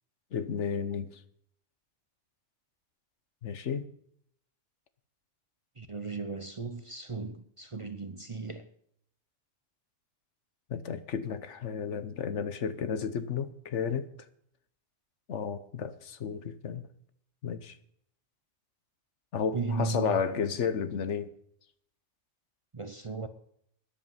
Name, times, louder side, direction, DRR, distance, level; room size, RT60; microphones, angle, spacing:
voice 1, 0.3-1.2 3.4-3.9 10.7-14.1 15.3-16.8 17.4-17.8 19.3-21.3, left 6 dB, 70° left, 1.2 m, -32 dB
voice 2, 5.8-8.7 19.5-20.4 22.7-23.3, right 4 dB, 30° right, 0.7 m, -36 dB
13.0 x 10.5 x 5.6 m
omnidirectional pair, 1.2 m